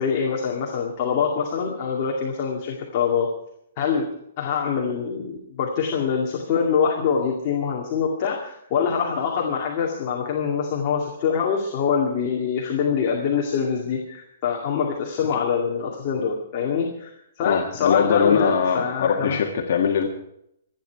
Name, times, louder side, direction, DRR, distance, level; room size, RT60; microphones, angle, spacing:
voice 1, 0.0-3.3 3.8-4.1 4.4-19.4, left 6 dB, 25° left, -2 dB, 2.2 m, -24 dB
voice 2, 17.4-20.1, left 7 dB, 50° left, 1 dB, 1.8 m, -21 dB
26.5 x 10.0 x 4.7 m, 0.75 s
hypercardioid pair, 175°, 0 cm